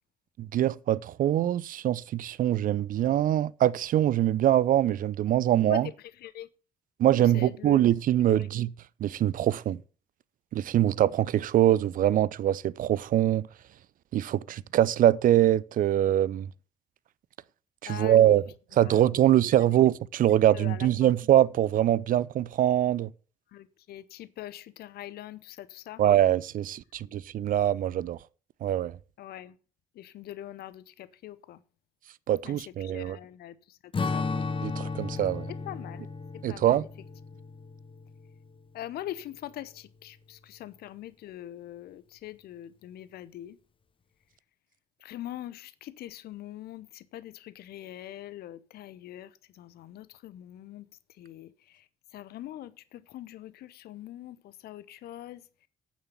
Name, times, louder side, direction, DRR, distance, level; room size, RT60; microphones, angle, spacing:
voice 1, 0.4-5.9 7.0-8.7 9.0-9.8 10.5-13.5 14.1-16.5 17.8-18.4 18.7-23.1 26.0-28.2 28.6-28.9 32.3-33.2 34.6-35.5 36.4-36.8, right 12 dB, 50° right, 0.5 m, -23 dB
voice 2, 6.2-6.5 7.1-7.8 8.3-8.5 17.9-18.4 18.8-19.3 20.5-21.1 23.5-26.0 29.2-29.6 29.9-31.6 32.4-34.4 35.5-36.1 36.3-36.9 37.3-37.4 38.7-43.6 45.0-50.9 51.2-51.8 52.1-55.4, left 13 dB, 60° left, 0.7 m, -43 dB
Strum, 33.9-38.6, left 4 dB, 30° left, 0.9 m, -34 dB
8.8 x 7.3 x 7.1 m
figure-of-eight pair, 45°, 18 cm